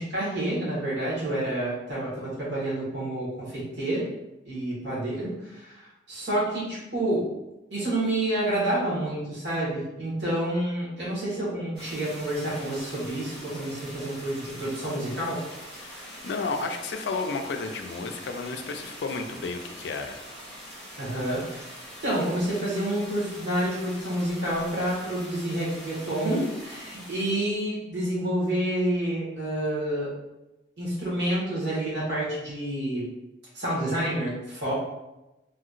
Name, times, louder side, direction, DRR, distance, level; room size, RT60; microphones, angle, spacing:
voice 1, 0.0-4.0 4.4-7.2 7.7-15.4 21.0-21.7 22.0-30.1 30.8-33.1 33.5-34.7, right 1 dB, 85° right, -7 dB, 1.4 m, -29 dB
sound 1, 11.8-27.5, equal, 70° right, 1.4 m, -43 dB
voice 2, 15.8-20.2, left 4 dB, 80° left, 5 dB, 0.4 m, -32 dB
3.1 x 2.8 x 2.4 m, 0.98 s
head